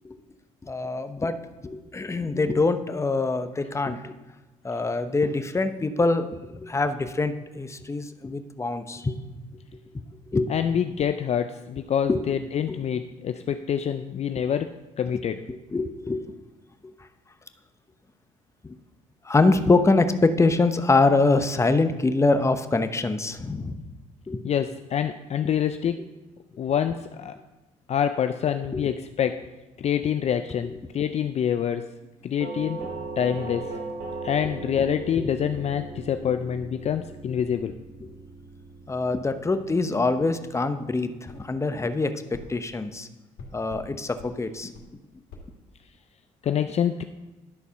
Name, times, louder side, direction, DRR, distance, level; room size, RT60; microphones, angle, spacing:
voice 1, 0.6-1.3 1.6-4.1 4.6-9.2 10.3-10.5 12.1-12.2 12.7-12.9 15.1-15.2 15.5-16.3 18.6-18.7 19.3-23.8 24.3-24.4 28.7-28.8 35.2-35.3 37.4-37.5 38.0-38.1 38.9-43.1 43.5-44.7, left 3 dB, 20° left, 9 dB, 0.7 m, -24 dB
voice 2, 10.5-15.4 24.4-26.0 26.6-27.4 27.9-29.4 29.8-31.9 32.2-32.8 33.2-33.8 34.2-37.8 46.4-47.0, left 8 dB, 45° left, 8 dB, 0.4 m, -26 dB
Doorbell, 32.4-41.2, right 3 dB, 85° right, 1.9 m, -39 dB
sound 1, 41.3-41.4 42.3-42.5 43.4-43.9 44.2-44.3 44.7-44.9 45.3-45.5, left 3 dB, 75° left, 2.1 m, -43 dB
12.0 x 4.1 x 5.7 m, 1.1 s
supercardioid pair, 75°, 15 cm